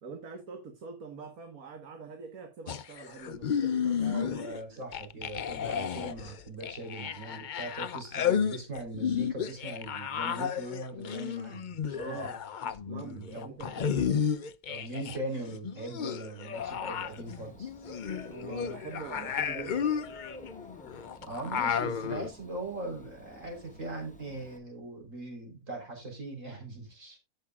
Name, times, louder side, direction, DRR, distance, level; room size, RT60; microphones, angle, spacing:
voice 1, 0.0-4.4 4.7-4.8 11.9-12.4 12.9-14.4 18.3-19.8, right 5 dB, 70° right, 1.9 m, -44 dB
sound 1, 2.7-4.6 4.9-15.2 15.4-22.3, left 8 dB, 65° left, 0.4 m, -33 dB
voice 2, 4.0-12.3 12.6-12.7 13.0-13.6 13.9-14.0 14.7-17.7 21.2-27.2, right 2 dB, 55° right, 4.2 m, -40 dB
Dog / Bird, 16.6-24.6, left 1 dB, 5° left, 1.3 m, -51 dB
15.5 x 6.6 x 2.3 m
omnidirectional pair, 1.6 m